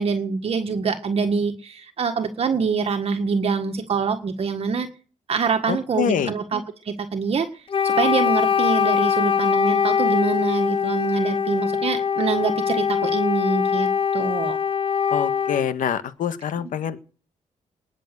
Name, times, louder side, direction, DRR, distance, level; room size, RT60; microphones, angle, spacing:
voice 1, 0.0-4.9 5.3-14.6, right 5 dB, 45° right, 6 dB, 1.7 m, -25 dB
voice 2, 5.7-6.3 15.1-17.0, left 8 dB, 75° left, 11 dB, 1.6 m, -25 dB
Wind instrument woodwind instrument, 7.7-15.7, left 7 dB, 40° left, 0.7 m, -22 dB
20.0 x 7.5 x 6.8 m, 0.41 s
cardioid pair, 135°, 14 cm